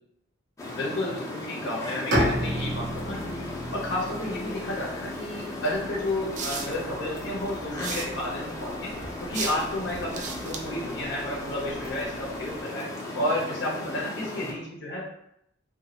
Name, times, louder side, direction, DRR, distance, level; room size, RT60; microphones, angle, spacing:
sound 1, 0.6-14.5, left 1 dB, 15° left, 0.5 m, -36 dB
voice 1, 0.7-12.9 13.1-15.1, left 1 dB, 60° left, -3 dB, 0.6 m, -32 dB
Bowed string instrument, 2.1-6.0, equal, 60° right, 0.8 m, -31 dB
sound 2, 5.7-12.6, right 4 dB, 40° right, 0.4 m, -39 dB
2.9 x 2.2 x 2.8 m, 0.77 s
head